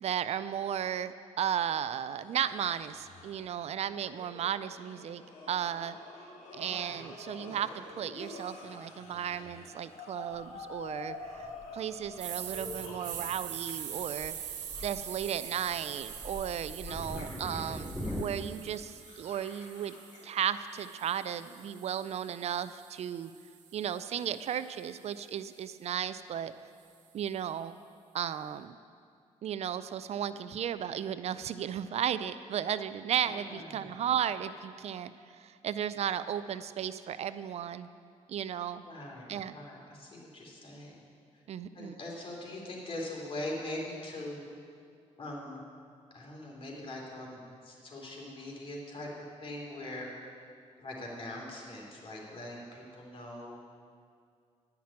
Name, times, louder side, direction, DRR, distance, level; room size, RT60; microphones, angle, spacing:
voice 1, 0.0-5.2 5.5-6.0 6.5-14.3 14.8-19.9 20.2-23.3 23.7-26.5 27.1-27.8 28.1-28.7 29.4-35.1 35.4-37.9 38.3-38.8 39.3-39.6 41.5-42.0, right 9 dB, 60° right, 14 dB, 0.4 m, -35 dB
sound 1, 2.2-13.7 14.0-16.6 17.0-21.5, left 2 dB, 80° left, 2.1 m, -49 dB
voice 2, 6.6-7.1 7.4-7.6 16.9-18.0 33.2-33.9 38.8-41.0 41.3-41.4 41.7-44.4 45.2-45.6 46.1-50.1 50.8-53.6, left 1 dB, 45° left, -2 dB, 3.0 m, -42 dB
Thunder, 10.3-18.2, equal, ahead, 0.9 m, -44 dB
sound 2, 12.2-20.2 20.7-24.9, right 9 dB, 85° right, 1.0 m, -44 dB
10.5 x 5.9 x 8.7 m, 2.2 s
cardioid pair, 75°, 12 cm